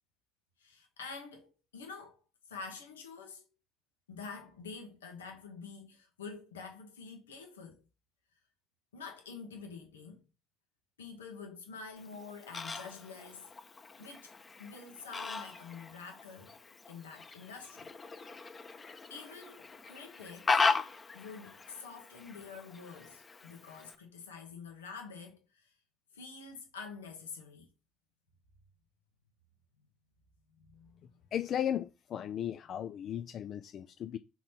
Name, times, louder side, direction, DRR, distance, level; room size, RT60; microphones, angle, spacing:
voice 1, 0.6-2.2 2.5-3.4 4.1-7.8 8.9-10.2 11.0-13.5 14.0-14.3 14.6-16.6 16.9-17.9 19.1-20.6 21.1-25.7 26.1-27.7 30.5-31.2 32.5-32.6, left 5 dB, 90° left, 1.3 m, -47 dB
Fowl, 12.0-24.0, left 4 dB, 35° left, 1.0 m, -38 dB
voice 2, 31.3-34.2, left 10 dB, 55° left, 0.5 m, -36 dB
5.9 x 4.0 x 4.5 m
hypercardioid pair, 55°, 0 cm